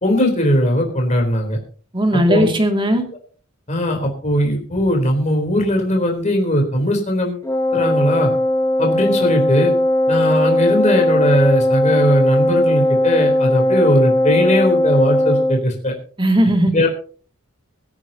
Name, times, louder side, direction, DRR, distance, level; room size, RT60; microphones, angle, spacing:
voice 1, 0.0-1.6 2.1-2.5 3.7-8.3 8.8-9.7 10.1-15.9 16.7-16.9, equal, 35° left, 2 dB, 3.7 m, -19 dB
voice 2, 1.9-3.0 16.2-16.9, equal, 20° right, 3 dB, 2.5 m, -17 dB
Wind instrument woodwind instrument, 7.4-15.6, left 1 dB, 15° left, 1.1 m, -18 dB
24.0 x 9.9 x 2.9 m, 0.42 s
head